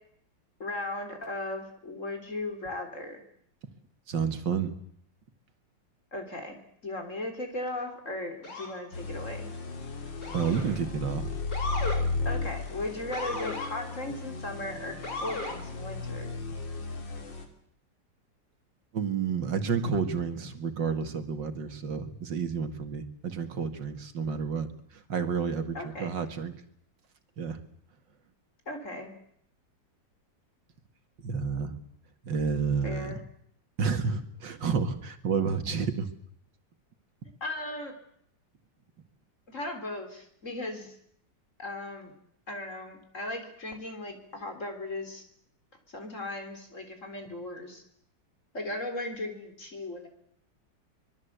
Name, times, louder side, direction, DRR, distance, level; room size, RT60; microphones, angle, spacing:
voice 1, 0.6-3.2 6.1-9.5 12.2-16.3 25.7-26.1 28.7-29.1 32.8-33.2 37.4-37.9 39.5-40.9 41.6-42.1 42.5-45.2 45.9-47.8 48.5-50.1, left 2 dB, 40° left, 6 dB, 4.2 m, -37 dB
voice 2, 4.1-4.7 10.3-11.3 18.9-24.7 24.9-26.5 27.4-27.6 31.2-31.8 32.2-33.1 33.8-36.1, right 6 dB, 75° right, 9 dB, 2.6 m, -30 dB
Motor vehicle (road) / Siren, 8.4-8.8 10.2-10.8 11.5-12.0 13.1-13.7 15.0-15.6, left 2 dB, 65° left, 4.8 m, -35 dB
sound 1, 8.9-17.4, left 3 dB, 80° left, 3.5 m, -35 dB
25.0 x 21.0 x 8.2 m, 0.70 s
omnidirectional pair, 2.0 m